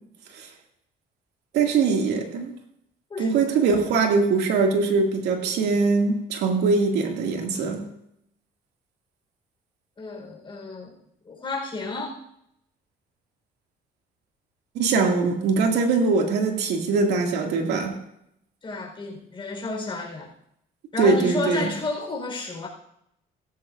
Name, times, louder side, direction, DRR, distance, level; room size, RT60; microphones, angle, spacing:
voice 1, 1.5-2.5 3.2-7.8 14.7-18.0 21.0-21.7, right 4 dB, 80° right, 2.4 m, -22 dB
voice 2, 3.1-3.5 10.0-10.9 11.3-12.2 18.6-20.3 20.9-22.7, left 3 dB, 30° left, 4.5 m, -31 dB
16.5 x 14.5 x 2.6 m
cardioid pair, 110°, 17 cm